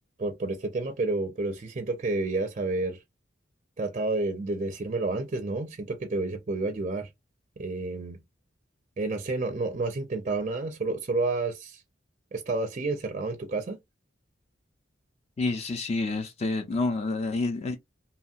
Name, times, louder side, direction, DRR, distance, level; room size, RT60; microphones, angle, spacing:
voice 1, 0.2-3.0 3.8-7.1 7.6-8.2 9.0-11.8 12.3-13.8, right 3 dB, 35° right, 0.4 m, -30 dB
voice 2, 15.4-17.8, left 3 dB, 35° left, 0.4 m, -28 dB
2.8 x 2.7 x 2.4 m
head